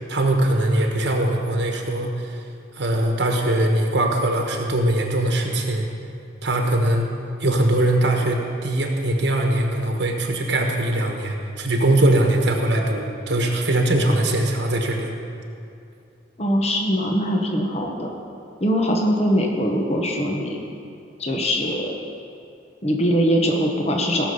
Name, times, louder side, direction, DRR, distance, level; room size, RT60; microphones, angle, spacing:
voice 1, 0.0-2.4 2.7-5.9 6.4-7.1 7.4-15.1, right 1 dB, 60° right, 2 dB, 1.3 m, -21 dB
voice 2, 16.4-18.2 18.6-20.6 21.2-21.9 22.8-24.3, equal, 35° left, 1 dB, 1.2 m, -22 dB
17.5 x 6.8 x 5.5 m, 2.5 s
head